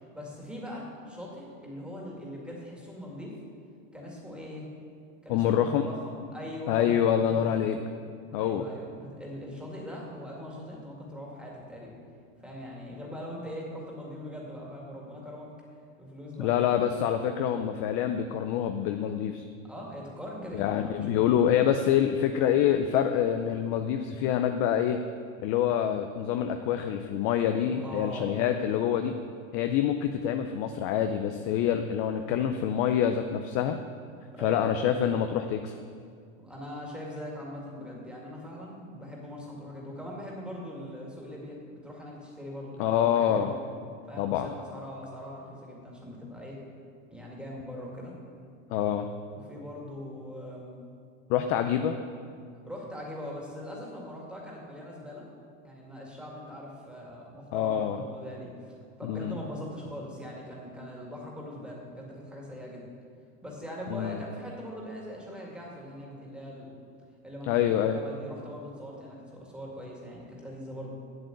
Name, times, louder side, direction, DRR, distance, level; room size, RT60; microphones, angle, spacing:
voice 1, 0.1-3.4 3.9-4.7 5.2-7.7 8.4-12.0 12.4-15.5 16.0-17.0 19.6-21.6 27.8-28.3 34.3-34.6 36.4-43.6 44.1-46.6 47.1-48.1 49.3-50.8 52.7-55.3 55.6-62.9 63.4-66.7 67.2-70.9, equal, 5° right, -3 dB, 2.1 m, -41 dB
voice 2, 5.3-5.9 6.7-7.8 8.3-8.6 16.4-19.4 20.5-25.0 25.4-29.2 29.5-33.8 34.4-35.7 42.8-43.5 44.2-44.5 48.7-49.1 51.3-52.0 57.5-58.0 59.0-59.4 63.9-64.2 67.5-68.0, left 9 dB, 35° left, 7 dB, 0.4 m, -26 dB
7.8 x 7.5 x 8.1 m, 2.2 s
supercardioid pair, 135°, 38 cm